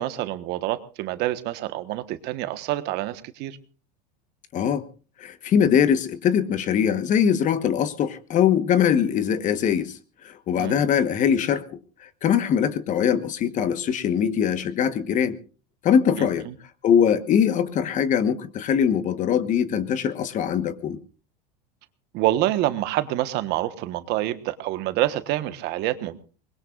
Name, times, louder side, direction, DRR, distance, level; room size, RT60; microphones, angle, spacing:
voice 1, 0.0-3.6 10.5-10.8 16.1-16.5 22.1-26.2, right 15 dB, 55° right, 1.3 m, -27 dB
voice 2, 4.5-4.8 5.2-10.0 10.2-15.4 15.8-16.5 16.8-21.0, left 8 dB, 40° left, 1.3 m, -22 dB
24.0 x 21.0 x 2.5 m
supercardioid pair, 130°, 20 cm